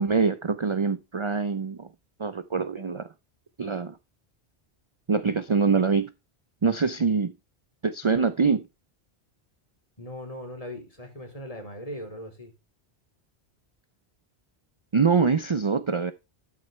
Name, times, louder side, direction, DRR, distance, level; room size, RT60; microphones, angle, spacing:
voice 1, 0.0-1.9 2.2-3.1 3.6-4.0 5.1-6.1 6.6-7.3 7.8-8.7 14.9-16.1, right 5 dB, 35° right, 0.5 m, -24 dB
voice 2, 10.0-12.5, equal, 35° left, 3.7 m, -39 dB
12.5 x 6.6 x 3.2 m
omnidirectional pair, 1.1 m